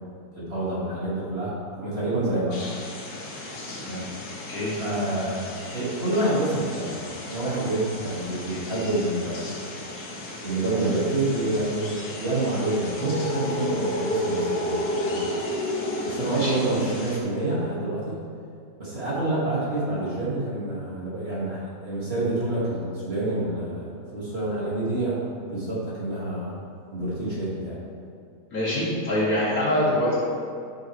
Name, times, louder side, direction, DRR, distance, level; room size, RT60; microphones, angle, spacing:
voice 1, 0.4-2.6 3.9-4.0 4.8-5.5 5.7-9.7 10.4-15.3 16.0-18.3 18.8-25.2 25.5-26.6 26.9-27.8, right 2 dB, 35° right, -8 dB, 2.1 m, -27 dB
sound 1, 2.5-17.2, left 1 dB, 75° left, 1.9 m, -33 dB
voice 2, 4.5-4.8 16.3-16.6 28.5-30.1, left 1 dB, 55° left, -8 dB, 2.8 m, -25 dB
13.0 x 6.3 x 3.2 m, 2.4 s
omnidirectional pair, 1.9 m